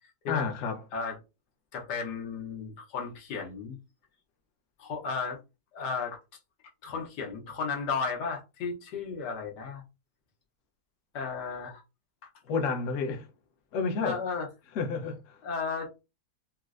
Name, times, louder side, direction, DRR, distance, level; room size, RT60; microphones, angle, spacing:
voice 1, 0.3-0.8 12.5-13.2 13.7-14.2 14.7-15.4, left 5 dB, 60° left, 0.9 m, -30 dB
voice 2, 1.7-3.8 4.8-5.4 5.7-6.2 6.8-9.8 11.1-11.8 14.0-14.5 15.4-16.0, left 5 dB, 85° left, 1.5 m, -34 dB
4.2 x 2.1 x 2.4 m
omnidirectional pair, 1.8 m